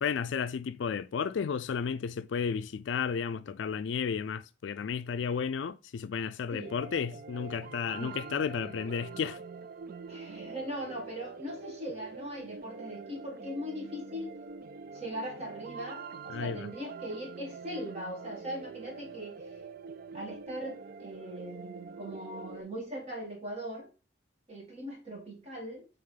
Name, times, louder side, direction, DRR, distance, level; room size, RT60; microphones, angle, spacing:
voice 1, 0.0-9.4 16.3-16.7, left 6 dB, 75° left, 0.4 m, -33 dB
sound 1, 6.6-22.6, right 5 dB, 50° right, 0.4 m, -45 dB
voice 2, 10.1-14.4 14.9-19.5 20.1-23.9 24.5-25.9, equal, 35° right, 2.1 m, -40 dB
9.2 x 3.5 x 3.8 m
head